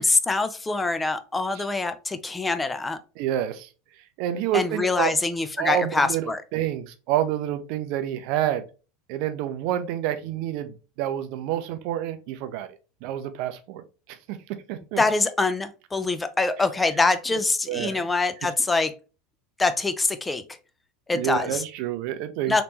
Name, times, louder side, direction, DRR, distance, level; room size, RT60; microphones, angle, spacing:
voice 1, 0.0-3.0 4.5-6.4 15.0-18.9 19.6-20.4 21.1-21.6 22.5-22.6, left 3 dB, 15° left, 0.4 m, -24 dB
voice 2, 3.2-3.7 4.2-5.1 5.6-6.3 6.5-8.6 9.1-12.7 13.0-13.8 14.1-14.4 14.7-15.0 17.3-17.4 17.7-18.1 21.1-22.6, right 11 dB, 60° right, 0.5 m, -28 dB
3.3 x 2.9 x 2.9 m
hypercardioid pair, 90°, 0 cm